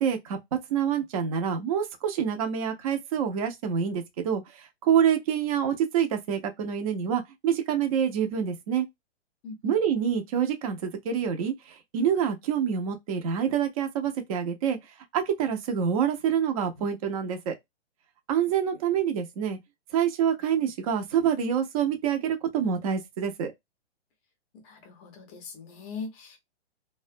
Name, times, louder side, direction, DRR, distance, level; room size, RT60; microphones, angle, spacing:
voice 1, 0.0-8.9 9.6-14.8 15.1-17.5 18.3-19.6 19.9-23.5, right 8 dB, 35° right, 0.5 m, -27 dB
voice 2, 9.4-9.8 24.5-26.4, left 4 dB, 20° left, 0.5 m, -40 dB
2.4 x 2.2 x 2.4 m
hypercardioid pair, 145°, 33 cm